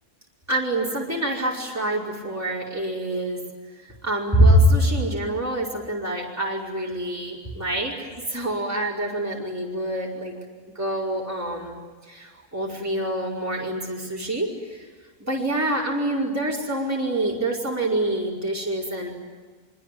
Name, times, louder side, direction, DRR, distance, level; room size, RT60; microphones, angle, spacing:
voice 1, 0.5-3.4 4.0-10.3 10.7-11.8 12.1-14.8 15.2-19.1, right 1 dB, 10° right, -3 dB, 5.1 m, -25 dB
25.0 x 24.5 x 9.4 m, 1.4 s
omnidirectional pair, 1.3 m